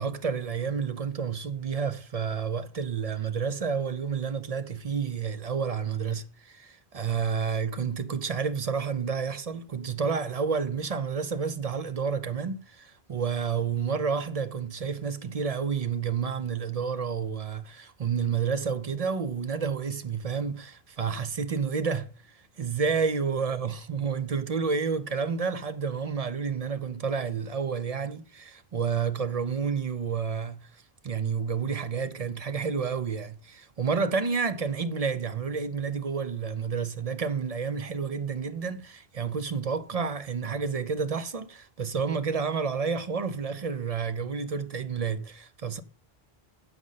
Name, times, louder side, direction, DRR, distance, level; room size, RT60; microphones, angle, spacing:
voice 1, 0.0-22.1 22.6-45.8, right 6 dB, 45° right, 0.6 m, -30 dB
7.9 x 6.3 x 5.5 m
omnidirectional pair, 1.1 m